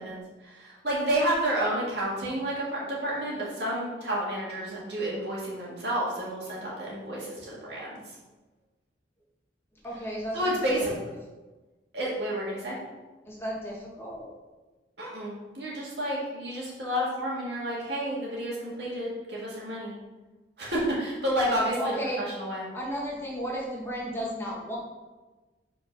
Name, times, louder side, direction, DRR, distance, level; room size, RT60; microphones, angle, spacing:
voice 1, 0.0-8.0 10.3-10.9 11.9-12.8 15.0-20.0 20.6-22.7, right 1 dB, 65° right, -5 dB, 1.9 m, -30 dB
voice 2, 9.8-10.9 13.2-14.3 21.4-22.2 22.7-24.8, equal, 15° left, -4 dB, 1.4 m, -34 dB
5.5 x 4.3 x 5.3 m, 1.2 s
head